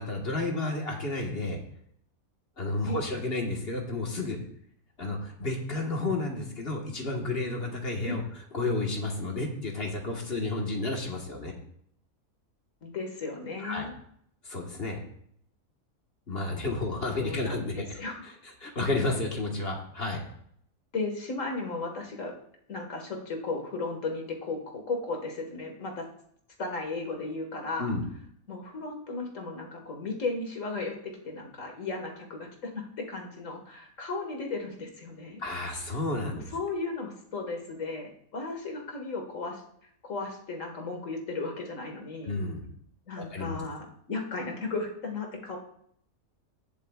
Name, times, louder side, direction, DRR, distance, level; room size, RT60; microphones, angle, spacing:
voice 1, 0.0-1.6 2.6-4.4 5.0-8.2 8.5-11.5 13.6-13.9 14.4-15.0 16.3-17.8 18.2-18.3 18.6-20.2 27.8-28.0 35.4-36.5 42.2-42.7 43.2-43.6, left 2 dB, 45° left, 1 dB, 1.6 m, -31 dB
voice 2, 12.8-13.9 17.2-18.1 20.9-22.3 22.7-26.1 26.6-27.9 28.5-35.4 36.3-39.6 40.0-42.4 43.1-45.6, left 3 dB, 60° left, 2 dB, 2.0 m, -35 dB
16.0 x 7.7 x 2.4 m, 0.67 s
omnidirectional pair, 1.5 m